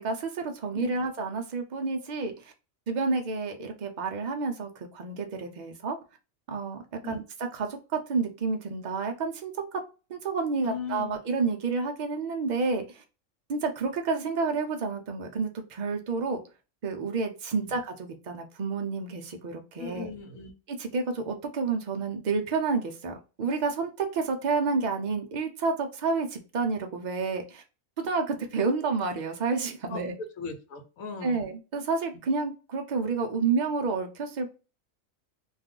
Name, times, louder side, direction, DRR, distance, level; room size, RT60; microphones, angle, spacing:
voice 1, 0.0-2.5 2.9-6.0 6.5-7.2 7.5-9.6 10.1-13.0 13.5-16.4 16.8-20.1 20.7-27.6 28.0-30.2 31.2-34.5, right 4 dB, 75° right, 4 dB, 0.4 m, -30 dB
voice 2, 10.6-11.2 17.6-17.7 19.7-20.5 29.9-31.4 32.1-32.2, left 5 dB, 85° left, 6 dB, 1.1 m, -38 dB
2.5 x 2.3 x 3.6 m, 0.31 s
omnidirectional pair, 1.4 m